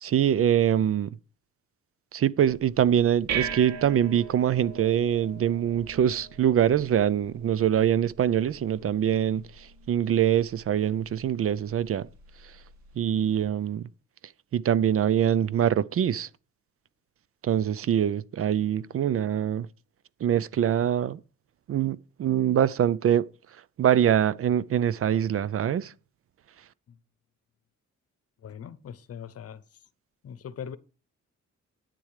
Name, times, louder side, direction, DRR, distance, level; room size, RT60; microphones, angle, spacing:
voice 1, 0.0-1.2 2.1-12.0 12.4-12.5 13.0-13.8 14.5-16.3 17.4-19.7 20.2-21.2 21.7-23.3 23.8-25.9, right 10 dB, 50° right, 0.5 m, -24 dB
sound 1, 2.5-13.4, right 7 dB, 70° right, 1.9 m, -41 dB
voice 2, 28.4-29.8 30.2-30.8, left 8 dB, 55° left, 0.8 m, -41 dB
10.5 x 9.2 x 4.9 m
wide cardioid pair, 175°, 30 cm